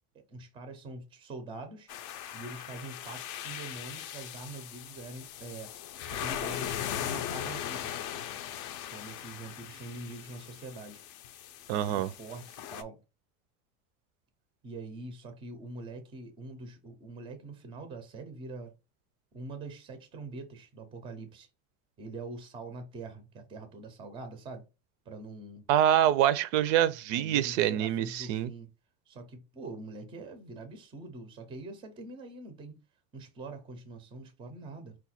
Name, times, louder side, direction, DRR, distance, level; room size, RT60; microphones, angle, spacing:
voice 1, 0.1-1.9 2.3-5.8 6.1-8.0 8.9-11.0 11.9-13.0 14.6-18.7 19.3-21.5 22.0-24.7 25.1-25.7 27.1-28.7 29.1-32.8 33.1-35.0, right 3 dB, 15° right, 0.4 m, -44 dB
sound 1, 1.9-12.8, left 10 dB, 45° left, 0.5 m, -39 dB
voice 2, 11.7-12.1 25.7-28.5, right 11 dB, 65° right, 0.5 m, -25 dB
4.8 x 2.2 x 4.2 m
cardioid pair, 175°, 39 cm